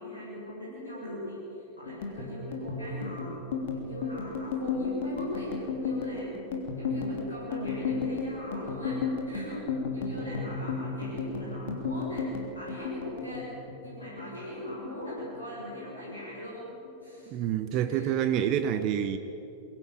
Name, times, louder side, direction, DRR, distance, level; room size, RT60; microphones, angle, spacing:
voice 1, 0.0-3.5 3.7-6.4 6.8-13.5 13.8-16.7 17.0-18.2, left 1 dB, 80° left, 7.2 m, -40 dB
sound 1, 1.9-14.4 14.7-15.7 16.0-16.4 16.7-17.4, left 4 dB, 55° left, 3.4 m, -34 dB
voice 2, 17.3-19.2, right 9 dB, 40° right, 1.1 m, -27 dB
23.0 x 17.0 x 8.8 m
figure-of-eight pair, 90°, 0 cm